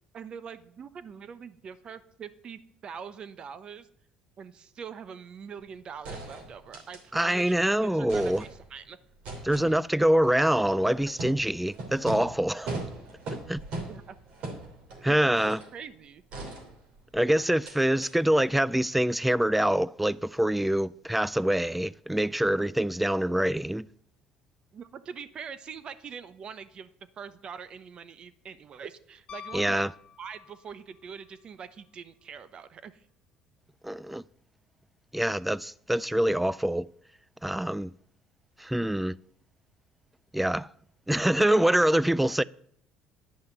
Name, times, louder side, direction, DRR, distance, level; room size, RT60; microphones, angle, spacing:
voice 1, 0.1-3.9 4.4-9.0 9.6-9.7 11.1-11.2 13.8-14.2 14.9-16.2 24.7-26.9 27.2-29.9 30.2-33.0, right 7 dB, 45° right, 0.9 m, -43 dB
sound 1, 5.6-5.7 6.0-7.6 7.9-8.8 9.2-15.8 16.3-17.2 17.6-17.7 18.0-18.1, right 2 dB, 65° right, 2.9 m, -40 dB
voice 2, 7.1-8.4 9.4-12.7 13.5-13.6 15.0-15.6 17.1-23.9 29.5-29.9 33.8-34.2 35.1-36.9 37.4-37.9 38.6-39.1 40.3-40.7 41.1-42.4, right 1 dB, 5° right, 0.3 m, -25 dB
Piano, 29.3-30.9 33.2-33.3, left 8 dB, 45° left, 0.9 m, -45 dB
10.5 x 5.6 x 7.9 m
supercardioid pair, 95°, 2 cm